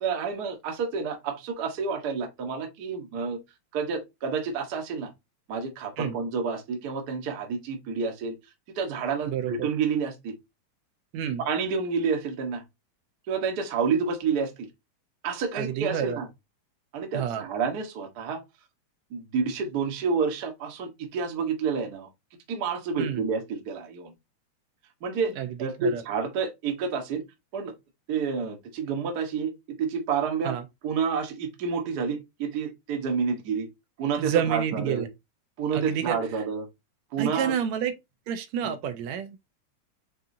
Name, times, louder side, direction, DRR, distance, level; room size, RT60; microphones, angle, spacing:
voice 1, 0.0-3.4 3.7-5.1 5.5-8.3 8.7-10.3 11.5-12.6 13.3-14.7 15.2-16.3 16.9-18.4 19.1-22.1 22.5-24.1 25.0-25.3 25.6-27.2 27.5-27.7 28.1-30.5 30.8-33.7 34.0-35.1 35.6-36.7 37.1-37.5 38.6-38.7, right 5 dB, 60° right, 1.0 m, -29 dB
voice 2, 9.3-9.7 11.1-11.4 15.6-16.2 17.1-17.5 23.0-23.2 25.4-26.0 30.4-30.6 34.2-35.1 35.7-36.2 37.2-38.0 38.3-39.4, right 8 dB, 75° right, 1.8 m, -29 dB
5.5 x 3.6 x 2.6 m
omnidirectional pair, 3.3 m